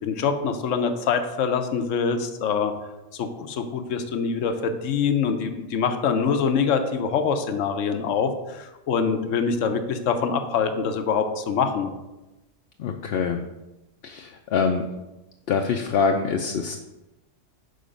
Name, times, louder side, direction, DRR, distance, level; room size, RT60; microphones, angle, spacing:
voice 1, 0.0-2.7 3.1-11.9, left 6 dB, 80° left, 7 dB, 1.1 m, -24 dB
voice 2, 12.8-13.4 14.0-14.8 15.5-16.8, left 5 dB, 60° left, 3 dB, 0.7 m, -24 dB
6.6 x 4.7 x 5.1 m, 1.0 s
omnidirectional pair, 1.3 m